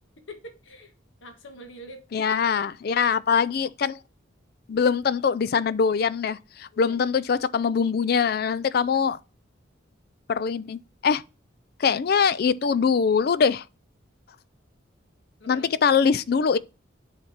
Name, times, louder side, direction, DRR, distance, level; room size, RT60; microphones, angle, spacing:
voice 1, 0.3-0.9 1.2-2.0 6.7-7.0 8.7-9.1 15.4-15.7, left 1 dB, 75° left, 1.4 m, -44 dB
voice 2, 2.1-4.0 4.7-9.2 10.3-11.2 11.8-13.6 15.5-16.6, left 6 dB, 50° left, 0.4 m, -23 dB
7.1 x 3.3 x 5.6 m
head